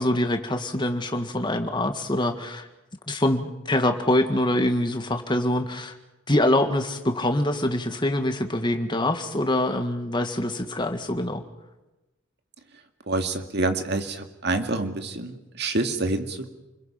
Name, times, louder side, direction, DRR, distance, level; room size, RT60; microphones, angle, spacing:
voice 1, 0.0-2.7 3.1-5.9 6.3-11.4, left 1 dB, 25° left, 6 dB, 2.0 m, -24 dB
voice 2, 13.1-16.5, right 2 dB, 60° right, 6 dB, 2.2 m, -27 dB
29.0 x 21.5 x 5.9 m, 1.0 s
head